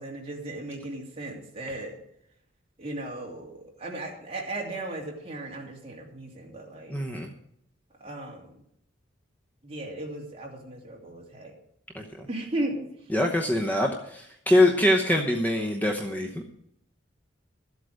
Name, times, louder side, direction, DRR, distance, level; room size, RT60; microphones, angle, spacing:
voice 1, 0.0-2.0 2.8-7.0 8.0-8.6 9.6-11.5 12.3-13.1, right 1 dB, 30° right, -1 dB, 2.7 m, -36 dB
voice 2, 6.9-7.3 11.9-12.3 13.1-16.5, left 1 dB, 10° left, 2 dB, 0.9 m, -24 dB
13.0 x 8.0 x 6.4 m, 0.74 s
head